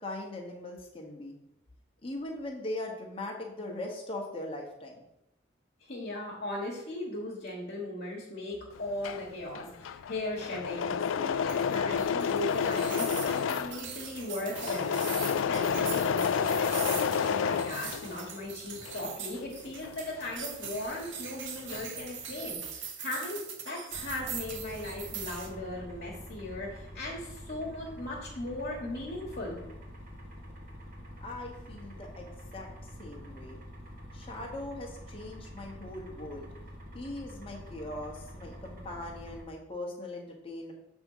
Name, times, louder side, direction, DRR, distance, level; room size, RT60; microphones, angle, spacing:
voice 1, 0.0-1.4 2.0-5.0 31.2-32.7 33.0-33.6 34.1-36.5 36.9-40.7, left 1 dB, 30° left, 0 dB, 1.1 m, -40 dB
voice 2, 5.8-29.6, left 2 dB, 55° left, -5 dB, 1.3 m, -38 dB
Engine / Mechanisms, 8.8-18.4 18.7-21.1 21.3-22.1, left 7 dB, 80° left, 0.3 m, -30 dB
sound 1, 11.5-25.5, right 7 dB, 75° right, 1.0 m, -41 dB
sound 2, 23.9-39.4, equal, 45° right, 1.5 m, -46 dB
7.0 x 3.6 x 5.5 m, 0.85 s
head